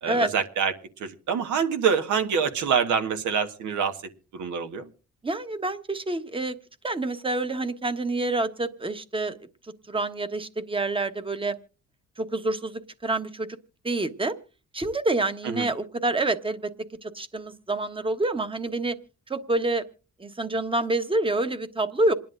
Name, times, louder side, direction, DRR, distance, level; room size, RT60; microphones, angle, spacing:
voice 1, 0.0-0.7 1.0-4.0 4.3-4.9 15.4-15.7, right 6 dB, 75° right, 8 dB, 1.4 m, -25 dB
voice 2, 5.2-6.6 6.8-9.3 9.9-11.6 12.2-12.7 13.0-13.5 13.8-14.3 14.7-16.7 17.0-18.9 19.3-19.8 20.2-22.1, right 2 dB, 15° right, 10 dB, 1.1 m, -27 dB
27.0 x 10.5 x 2.5 m, 0.35 s
cardioid pair, 90°, 30 cm